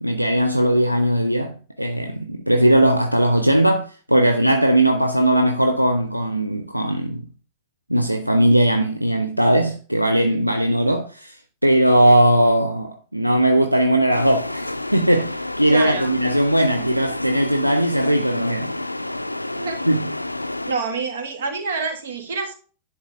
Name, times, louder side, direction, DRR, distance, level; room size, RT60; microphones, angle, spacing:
voice 1, 0.0-7.2 7.9-11.4 11.6-18.7 19.9-20.1, right 1 dB, 90° right, 0.5 m, -19 dB
sound 1, 14.1-20.7, left 2 dB, 85° left, 0.3 m, -30 dB
voice 2, 15.7-16.1 19.6-19.8 20.7-22.5, right 4 dB, 65° right, 1.8 m, -27 dB
10.5 x 4.6 x 3.4 m
figure-of-eight pair, 90°, 0 cm